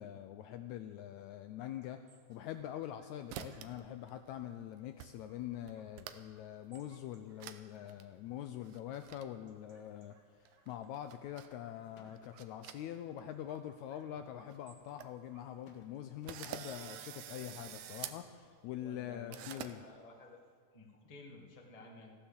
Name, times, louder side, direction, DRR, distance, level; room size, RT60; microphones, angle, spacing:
voice 1, 0.0-2.0 2.3-10.1 10.7-19.8, left 11 dB, 80° left, 8 dB, 1.7 m, -44 dB
sound 1, 1.8-20.6, right 4 dB, 50° right, 1.3 m, -71 dB
sound 2, 2.4-3.0 3.3-3.8 4.1-4.6 5.0-5.1 5.4-6.4 6.8-6.9 7.4-7.6 7.9-8.0 8.6-9.2 10.5-11.5 12.1-13.2 13.5-13.6 14.2-14.3 14.5-14.6 14.8-15.1 15.6-15.7 16.3-18.2 19.3-19.7, right 11 dB, 80° right, 2.1 m, -47 dB
sound 3, 11.6-11.7 12.0-12.5 14.0-14.9 15.7-16.0 16.2-17.0 17.7-18.4, left 5 dB, 55° left, 1.9 m, -62 dB
voice 2, 18.8-20.4 20.7-22.1, left 2 dB, 20° left, 1 dB, 0.9 m, -54 dB
15.0 x 10.0 x 7.1 m, 2.2 s
omnidirectional pair, 3.7 m